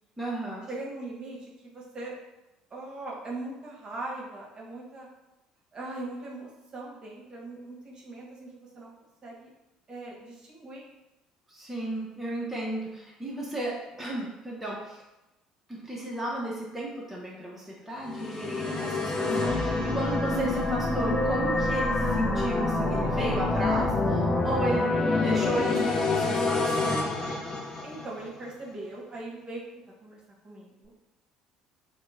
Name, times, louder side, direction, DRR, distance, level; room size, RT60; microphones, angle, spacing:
voice 1, 0.2-0.7 11.5-15.0 15.7-24.9 25.2-26.9, right 1 dB, 5° right, -5 dB, 0.7 m, -34 dB
voice 2, 0.7-2.1 2.7-5.1 5.7-8.9 9.2-9.5 9.9-10.8 27.8-29.6 30.0-30.2 30.4-30.9, right 2 dB, 35° right, -3 dB, 1.0 m, -40 dB
sound 1, 18.0-28.3, left 2 dB, 30° left, 0.7 m, -27 dB
2.9 x 2.1 x 3.5 m, 0.99 s
figure-of-eight pair, 55°, 3 cm